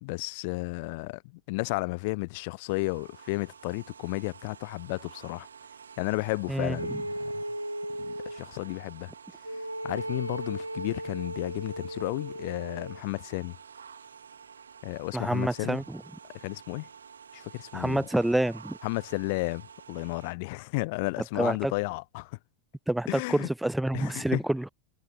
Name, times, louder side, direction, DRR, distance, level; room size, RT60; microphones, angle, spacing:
voice 1, 0.0-5.5 6.0-7.4 8.0-9.1 9.8-13.6 14.8-15.8 16.3-16.9 17.3-18.1 18.8-22.4 23.1-23.5 23.9-24.4, left 26 dB, 50° left, 0.5 m, -33 dB
sound 1, 2.7-20.3, right 6 dB, 70° right, 2.4 m, -50 dB
sound 2, 6.8-8.4 9.4-13.0, right 1 dB, 90° right, 1.2 m, -36 dB
voice 2, 15.1-16.0 17.7-18.8 21.4-21.7 22.9-24.7, right 1 dB, 5° right, 0.5 m, -27 dB
figure-of-eight pair, 90°, 0 cm